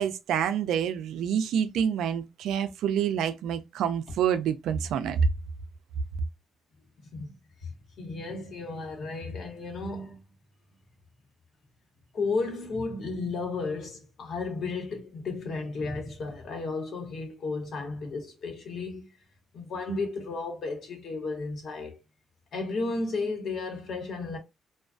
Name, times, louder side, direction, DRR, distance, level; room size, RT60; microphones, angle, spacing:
voice 1, 0.0-5.3, right 8 dB, 80° right, 0.4 m, -27 dB
voice 2, 7.6-10.2 12.1-19.1 19.5-22.0 22.5-24.4, left 3 dB, 60° left, 1.0 m, -33 dB
2.3 x 2.3 x 2.4 m
cardioid pair, 90°, 0 cm